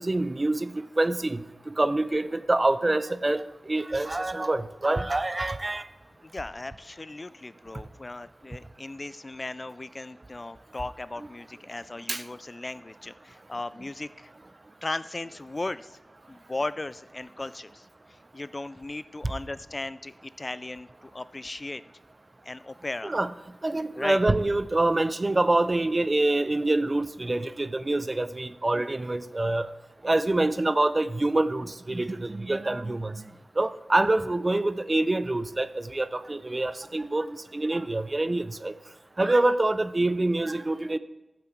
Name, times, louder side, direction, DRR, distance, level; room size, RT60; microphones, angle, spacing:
voice 1, 0.0-5.8 12.1-12.2 23.0-23.3 23.6-29.7 30.0-33.2 33.6-38.7 39.2-41.0, right 2 dB, 35° right, 14 dB, 0.5 m, -26 dB
voice 2, 6.2-14.3 14.8-16.0 16.3-21.8 22.4-23.2 23.9-24.2, left 2 dB, 35° left, 15 dB, 0.3 m, -37 dB
13.0 x 7.5 x 4.5 m, 1.0 s
wide cardioid pair, 65°, 0 cm